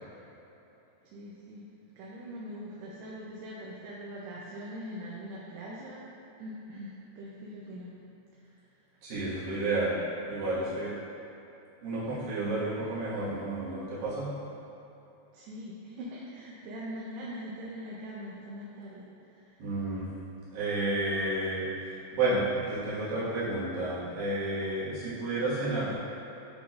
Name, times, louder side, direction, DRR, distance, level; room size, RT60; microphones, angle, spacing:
voice 1, 1.0-1.7 2.0-6.0 6.4-7.9 8.3-8.8 15.3-19.7, equal, 80° right, -6 dB, 2.7 m, -42 dB
voice 2, 9.0-10.0 10.3-10.9 11.8-14.3 19.6-20.1 20.5-26.0, right 2 dB, 65° right, -11 dB, 3.2 m, -31 dB
10.5 x 3.7 x 2.5 m, 3.0 s
omnidirectional pair, 4.9 m